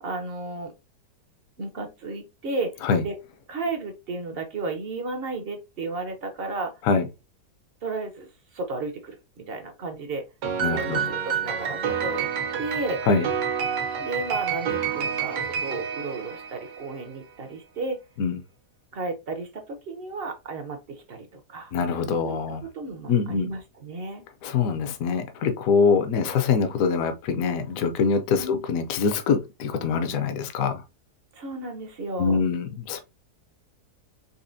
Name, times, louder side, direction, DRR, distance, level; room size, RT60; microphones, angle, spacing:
voice 1, 0.0-0.7 1.6-3.1 3.5-6.7 7.8-10.2 10.7-12.3 12.6-13.0 14.0-18.0 18.9-21.7 22.2-22.4 22.7-24.2 28.4-28.6 31.3-32.4, right 3 dB, 60° right, 0.6 m, -33 dB
Piano, 10.4-16.9, right 7 dB, 80° right, 1.4 m, -28 dB
voice 2, 10.6-11.1 13.1-13.3 18.2-18.4 21.7-22.6 23.1-23.5 24.4-30.8 32.2-33.0, left 5 dB, 70° left, 0.9 m, -24 dB
4.2 x 3.0 x 2.6 m
omnidirectional pair, 1.8 m